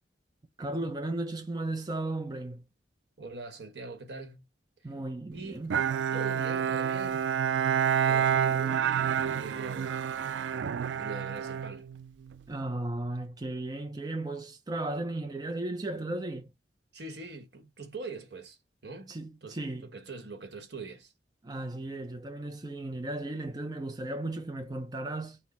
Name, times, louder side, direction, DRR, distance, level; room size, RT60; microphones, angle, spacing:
voice 1, 0.6-2.6 4.8-5.8 12.5-16.5 19.1-19.9 21.4-25.4, right 2 dB, 20° right, 0.5 m, -35 dB
voice 2, 3.2-4.4 4.8-4.9 5.3-5.7 6.1-7.3 8.0-8.8 9.3-10.0 11.0-11.9 16.9-19.1 19.4-21.1, right 3 dB, 70° right, 1.2 m, -42 dB
Bowed string instrument, 5.7-12.4, right 8 dB, 85° right, 0.3 m, -28 dB
5.9 x 2.1 x 4.1 m
head